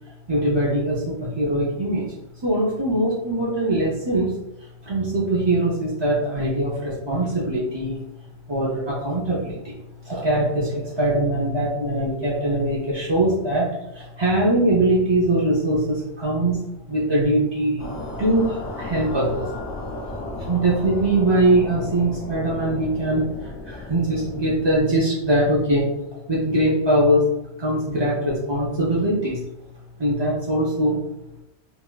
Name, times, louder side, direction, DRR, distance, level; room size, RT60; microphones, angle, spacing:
voice 1, 0.3-2.1 2.4-4.3 4.8-8.0 8.5-9.8 10.0-13.7 13.9-16.6 16.9-17.9 18.2-19.5 20.4-27.3 27.6-29.4 30.0-31.0, right 1 dB, 40° right, -6 dB, 0.4 m, -22 dB
sound 1, 17.8-24.8, left 1 dB, 80° left, 1.0 m, -34 dB
3.8 x 2.3 x 2.2 m, 0.86 s
omnidirectional pair, 1.2 m